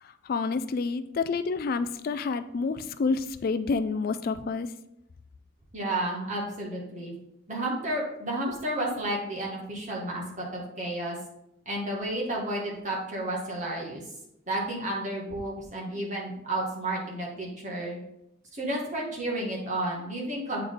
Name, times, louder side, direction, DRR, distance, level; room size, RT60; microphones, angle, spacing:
voice 1, 0.0-4.7, left 4 dB, 50° left, 11 dB, 0.3 m, -29 dB
voice 2, 5.7-7.1 7.5-11.2 11.7-14.0 14.5-18.0 18.5-20.6, right 1 dB, 40° right, -3 dB, 2.0 m, -31 dB
7.8 x 4.7 x 3.9 m, 0.80 s
head